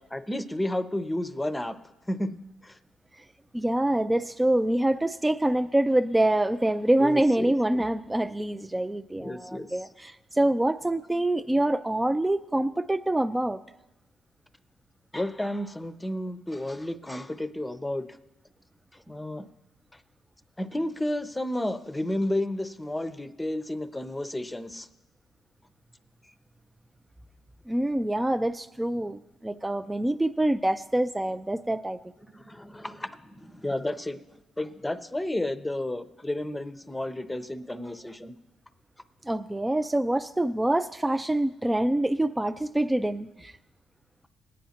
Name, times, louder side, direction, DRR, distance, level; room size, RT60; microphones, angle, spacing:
voice 1, 0.0-1.8 2.1-2.3 2.6-2.8 7.0-7.8 9.2-9.7 15.1-18.1 19.1-19.4 20.6-24.9 32.3-34.2 34.6-38.3, left 1 dB, 10° left, 10 dB, 0.7 m, -32 dB
voice 2, 3.5-13.6 27.7-32.0 39.2-43.5, right 1 dB, 10° right, 9 dB, 0.3 m, -25 dB
20.0 x 9.3 x 2.9 m, 1.0 s
cardioid pair, 90°, 0 cm